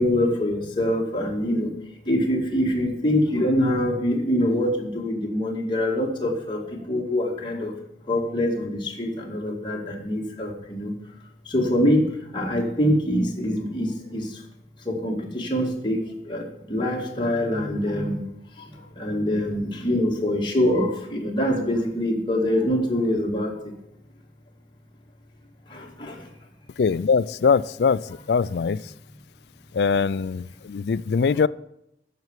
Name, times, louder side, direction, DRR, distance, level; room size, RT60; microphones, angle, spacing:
voice 1, 0.0-1.7 2.1-7.7 8.1-10.9 11.5-12.1 12.3-14.3 14.9-18.2 19.0-23.5 25.7-26.2, left 1 dB, 25° left, -1 dB, 2.2 m, -24 dB
voice 2, 26.8-28.0 28.3-28.8 29.7-31.5, left 5 dB, 65° left, 19 dB, 0.4 m, -22 dB
9.1 x 6.9 x 8.2 m, 0.80 s
head